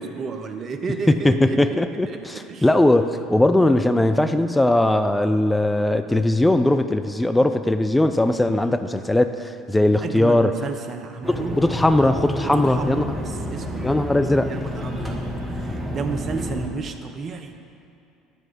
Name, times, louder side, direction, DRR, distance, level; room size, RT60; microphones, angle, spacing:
voice 1, 0.0-1.8 2.0-2.7 8.5-8.7 10.0-11.6 12.4-14.0 14.4-17.5, right 5 dB, 40° right, 7 dB, 0.7 m, -32 dB
voice 2, 1.2-10.5 11.3-13.0 13.8-14.5, left 1 dB, 10° left, 8 dB, 0.4 m, -19 dB
sound 1, 11.2-16.7, equal, 10° right, 1.3 m, -29 dB
9.7 x 4.7 x 5.9 m, 2.7 s
figure-of-eight pair, 65°, 0 cm